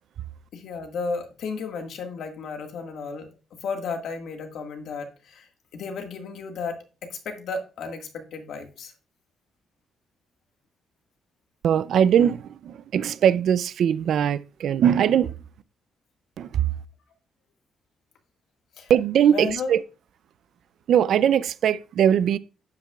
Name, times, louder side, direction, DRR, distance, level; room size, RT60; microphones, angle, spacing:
voice 1, 0.5-3.3 3.6-6.8 7.1-8.9 18.8-18.9 19.3-19.7, left 4 dB, 70° left, 1.8 m, -33 dB
voice 2, 11.6-15.3 16.4-16.6 18.9-19.8 20.9-22.4, right 9 dB, 70° right, 0.5 m, -21 dB
11.5 x 8.1 x 2.4 m
cardioid pair, 90°, 0 cm